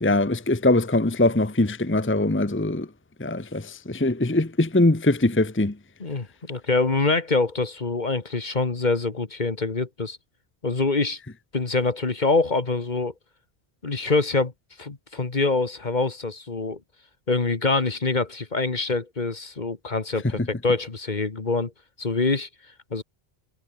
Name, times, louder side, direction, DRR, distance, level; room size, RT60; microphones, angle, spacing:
voice 1, 0.0-2.9 3.2-5.7, left 2 dB, 10° left, 1.0 m, -22 dB
voice 2, 6.0-10.2 10.6-11.2 11.5-13.1 13.8-14.5 14.8-16.8 17.3-21.7 22.0-22.5 22.9-23.0, left 3 dB, 45° left, 1.8 m, -25 dB
omnidirectional pair, 1.1 m